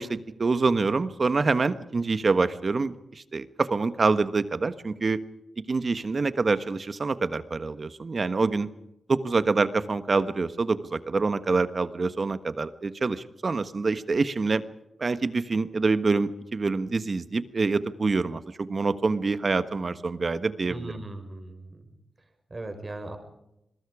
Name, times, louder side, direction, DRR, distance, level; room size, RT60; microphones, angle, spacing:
voice 1, 0.0-5.2 5.7-8.7 9.1-14.6 15.0-21.0, right 4 dB, 45° right, 12 dB, 1.4 m, -26 dB
voice 2, 20.7-21.9 22.5-23.2, right 2 dB, 30° right, 6 dB, 5.6 m, -38 dB
27.5 x 22.0 x 5.0 m, 0.85 s
wide cardioid pair, 95°, 0 cm